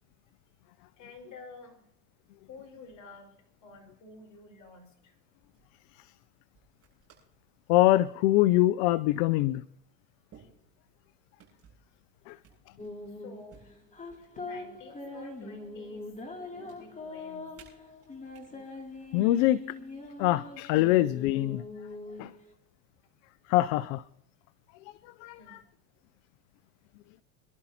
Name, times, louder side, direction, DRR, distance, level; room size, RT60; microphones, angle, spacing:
voice 1, 1.0-1.9 2.5-5.1 13.1-13.6 14.2-16.1 16.5-17.5 25.4-25.6, left 3 dB, 40° left, 1 dB, 4.9 m, -50 dB
sound 1, 4.7-5.0 5.4-5.7 6.5-7.4 7.8-8.2 9.2-9.3 10.3-11.0 11.4-11.9 12.4-13.0 13.5-14.8 15.2-16.0 16.3-16.8 17.5-18.5 19.2-19.5 20.5-21.0, right 7 dB, 30° right, 7.8 m, -59 dB
voice 2, 7.7-9.6 12.3-12.4 19.1-19.6 20.2-21.6 22.2-22.3 23.5-24.0 24.8-25.6, left 16 dB, 60° left, 18 dB, 0.6 m, -24 dB
sound 2, 12.8-22.5, left 2 dB, 15° left, 2.6 m, -42 dB
25.5 x 12.0 x 2.8 m, 0.71 s
supercardioid pair, 110°, 46 cm